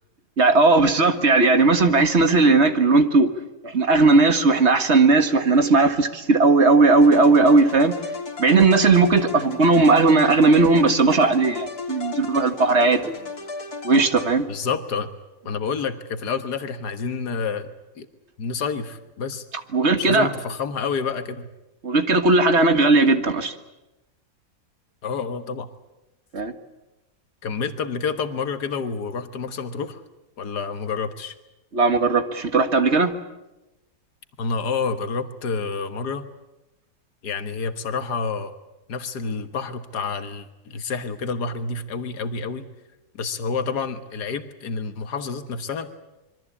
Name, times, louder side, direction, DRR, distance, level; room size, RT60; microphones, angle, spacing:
voice 1, 0.4-3.3 3.6-8.0 8.4-13.2 13.8-14.4 19.5-20.3 21.8-23.5 26.3-26.5 31.7-33.1, right 3 dB, 45° right, 9 dB, 1.9 m, -17 dB
sound 1, 7.0-14.7, left 4 dB, 70° left, 3.8 m, -35 dB
voice 2, 14.5-15.1 15.4-17.7 18.0-18.1 18.4-19.5 19.9-21.5 25.0-25.7 27.4-30.0 30.4-31.4 34.4-36.3 37.2-38.5 38.9-42.7 43.1-45.9, left 5 dB, 90° left, 9 dB, 2.0 m, -28 dB
26.5 x 23.0 x 8.5 m, 0.99 s
omnidirectional pair, 1.7 m